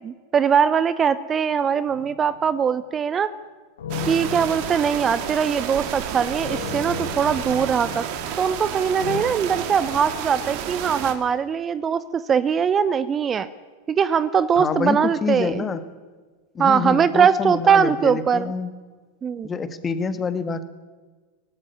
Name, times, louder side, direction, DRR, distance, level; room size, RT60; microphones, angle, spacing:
voice 1, 0.0-3.3 4.1-8.0 8.4-13.5 13.9-15.6 16.6-18.5 19.2-19.5, right 7 dB, 25° right, 15 dB, 0.8 m, -21 dB
sound 1, 1.9-2.5 3.8-5.6 6.4-8.6 9.0-9.2, left 7 dB, 70° left, 2.6 m, -35 dB
sound 2, 3.9-11.1, right 9 dB, 50° right, 2.3 m, -31 dB
voice 2, 14.6-15.8 16.5-18.7 19.4-20.6, left 5 dB, 20° left, 12 dB, 1.7 m, -27 dB
18.0 x 16.5 x 9.7 m, 1.4 s
figure-of-eight pair, 90°, 0 cm